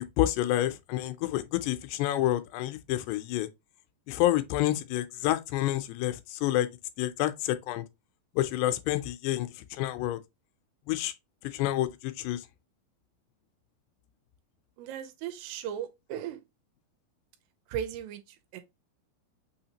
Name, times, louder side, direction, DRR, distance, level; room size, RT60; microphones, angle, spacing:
voice 1, 0.0-3.5 4.1-6.7 7.0-7.8 8.4-9.5 9.8-10.2 10.9-11.1 11.5-12.4, left 14 dB, 85° left, 2.7 m, -28 dB
voice 2, 14.8-16.4 17.7-18.2 18.5-18.6, right 9 dB, 90° right, 2.8 m, -36 dB
6.3 x 2.8 x 2.8 m
omnidirectional pair, 4.7 m